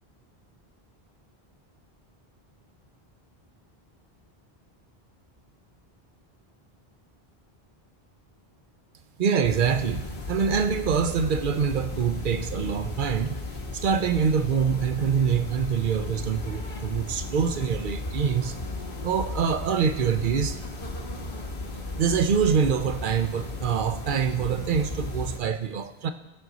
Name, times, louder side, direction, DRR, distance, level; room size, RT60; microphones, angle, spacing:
voice 1, 9.2-13.3 13.7-18.6 19.0-20.7 22.0-26.1, right 7 dB, 55° right, 9 dB, 0.8 m, -25 dB
sound 1, 9.4-25.4, left 2 dB, 60° left, 1.4 m, -35 dB
18.0 x 6.2 x 4.0 m, 1.0 s
omnidirectional pair, 1.0 m